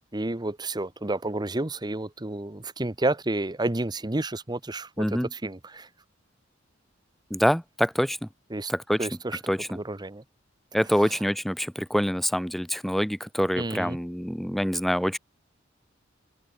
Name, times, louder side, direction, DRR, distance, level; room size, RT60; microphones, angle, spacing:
voice 1, 0.1-5.9 8.5-8.7 9.0-9.4 9.7-10.2 13.6-14.0, right 2 dB, 20° right, 1.0 m, -30 dB
voice 2, 5.0-5.3 7.3-8.2 8.7-9.1 9.5-9.8 10.7-15.2, equal, ahead, 1.2 m, -26 dB
head